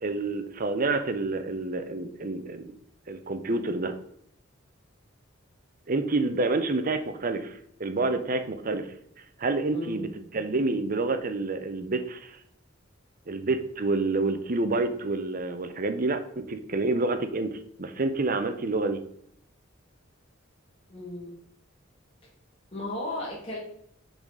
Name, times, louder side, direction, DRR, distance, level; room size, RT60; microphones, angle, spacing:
voice 1, 0.0-2.7 3.1-3.9 5.9-8.9 9.4-12.4 13.3-19.0, right 3 dB, 45° right, 9 dB, 0.7 m, -28 dB
voice 2, 9.7-10.1 20.9-21.4 22.7-23.6, left 1 dB, 30° left, -6 dB, 1.8 m, -35 dB
6.9 x 4.1 x 4.8 m, 0.69 s
head